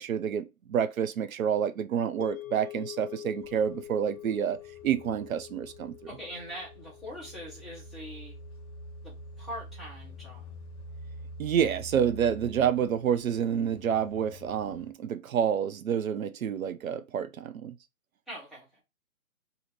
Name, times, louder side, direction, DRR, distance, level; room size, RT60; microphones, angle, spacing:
voice 1, 0.0-4.6 4.8-5.9 11.4-17.8, right 8 dB, 70° right, 0.6 m, -28 dB
sound 1, 2.2-10.5, left 14 dB, 75° left, 0.7 m, -46 dB
sound 2, 3.4-14.9, equal, 50° left, 1.1 m, -47 dB
voice 2, 6.1-8.4 9.0-10.5 18.3-18.8, equal, ahead, 0.7 m, -42 dB
2.8 x 2.7 x 4.4 m
hypercardioid pair, 150°, 43 cm